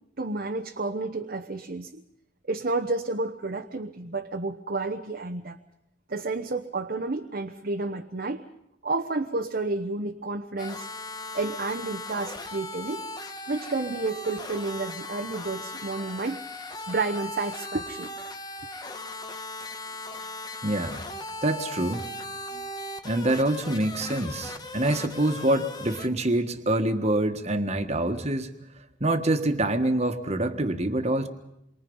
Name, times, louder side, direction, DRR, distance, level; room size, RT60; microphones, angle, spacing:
voice 1, 0.2-2.0 2.4-5.6 6.1-8.4 8.8-10.9 11.3-13.1 13.5-16.4 16.9-18.1, right 3 dB, 50° right, 4 dB, 1.0 m, -30 dB
sound 1, 10.6-26.1, left 2 dB, 20° left, 1.2 m, -38 dB
voice 2, 20.6-21.0 21.4-22.0 22.5-22.6 23.0-28.5 29.0-31.3, right 1 dB, 35° right, 7 dB, 1.6 m, -26 dB
28.0 x 23.5 x 5.5 m, 0.82 s
head